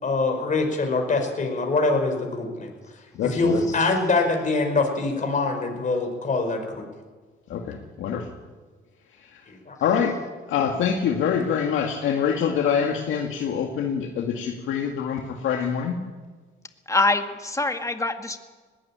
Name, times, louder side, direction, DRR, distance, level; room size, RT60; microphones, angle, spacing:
voice 1, 0.0-6.9 9.5-9.7, left 3 dB, 40° left, 3 dB, 5.1 m, -24 dB
voice 2, 3.1-3.6 7.5-8.3 9.3-9.4 9.8-10.1 10.5-16.0, left 7 dB, 80° left, 1 dB, 2.0 m, -25 dB
voice 3, 16.9-18.4, left 2 dB, 15° left, 6 dB, 1.9 m, -24 dB
20.5 x 16.5 x 8.8 m, 1.4 s
cardioid pair, 90°, 20 cm